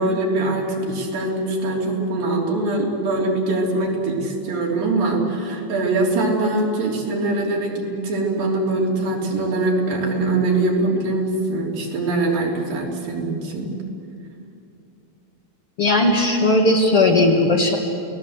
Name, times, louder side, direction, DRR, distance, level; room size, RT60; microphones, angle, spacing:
voice 1, 0.0-13.7, right 2 dB, 70° right, -1 dB, 5.0 m, -22 dB
voice 2, 15.8-17.8, left 2 dB, 45° left, 1 dB, 2.4 m, -17 dB
29.0 x 18.5 x 8.0 m, 2.6 s
omnidirectional pair, 4.2 m